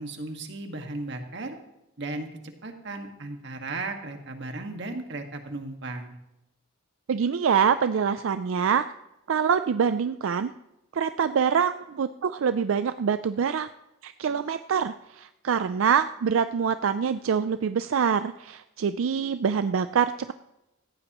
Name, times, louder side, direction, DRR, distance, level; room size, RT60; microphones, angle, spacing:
voice 1, 0.0-1.6 2.0-2.3 2.6-6.2, right 2 dB, 60° right, 4 dB, 1.7 m, -35 dB
voice 2, 7.1-8.9 9.3-10.5 10.9-13.7 14.0-20.1, right 7 dB, 90° right, 11 dB, 0.4 m, -25 dB
17.5 x 15.0 x 3.0 m, 0.92 s
head